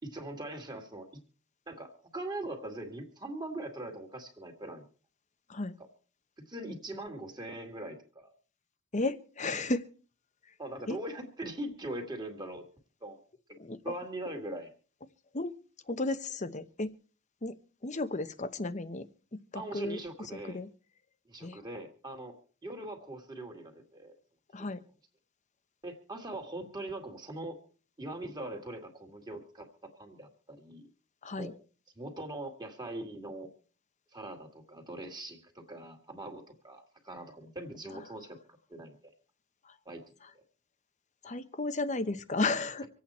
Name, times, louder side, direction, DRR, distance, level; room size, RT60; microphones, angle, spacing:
voice 1, 0.0-1.1 1.7-4.9 6.5-8.3 10.6-12.7 13.0-13.2 13.8-14.7 19.5-20.6 21.3-22.4 22.6-24.1 25.8-27.6 28.0-30.9 31.4-31.5 32.0-33.5 34.1-38.4 38.7-39.1 39.9-40.0, right 1 dB, 20° right, 3 dB, 2.3 m, -41 dB
voice 2, 8.9-9.9 10.9-11.0 13.6-13.9 15.3-15.5 15.9-16.9 17.4-17.6 17.8-19.0 19.3-20.0 20.5-20.7 21.4-21.6 24.5-24.8 31.2-31.5 37.9-38.0 39.6-39.7 41.2-42.9, left 2 dB, 35° left, 12 dB, 0.9 m, -33 dB
26.0 x 8.6 x 4.3 m, 0.40 s
head